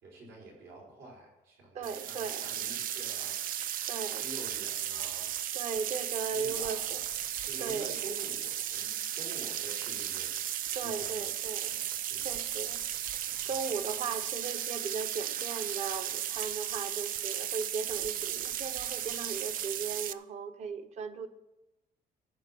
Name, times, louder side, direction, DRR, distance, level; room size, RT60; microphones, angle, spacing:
voice 1, 0.0-3.6 4.2-5.4 5.9-7.0 7.4-10.3 10.7-11.3 11.7-12.4 13.5-13.8, right 2 dB, 85° right, 5.3 m, -48 dB
voice 2, 1.7-2.5 3.9-4.3 5.5-7.0 7.6-8.0 10.7-11.7 12.2-12.8 13.4-21.3, right 5 dB, 45° right, 0.9 m, -37 dB
sound 1, 1.8-20.1, right 11 dB, 60° right, 0.5 m, -35 dB
14.0 x 6.0 x 7.5 m
cardioid pair, 165°, 16 cm